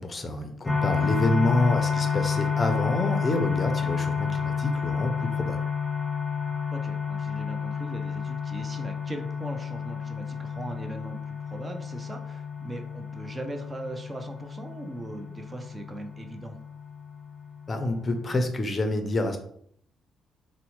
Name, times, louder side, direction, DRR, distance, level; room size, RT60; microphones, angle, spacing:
voice 1, 0.0-5.6 17.7-19.4, left 1 dB, 30° left, 6 dB, 0.5 m, -27 dB
sound 1, 0.7-18.4, left 6 dB, 10° left, 0.9 m, -30 dB
voice 2, 6.7-16.6, right 1 dB, 25° right, 5 dB, 0.5 m, -39 dB
3.9 x 2.1 x 3.0 m, 0.66 s
cardioid pair, 90°, 0 cm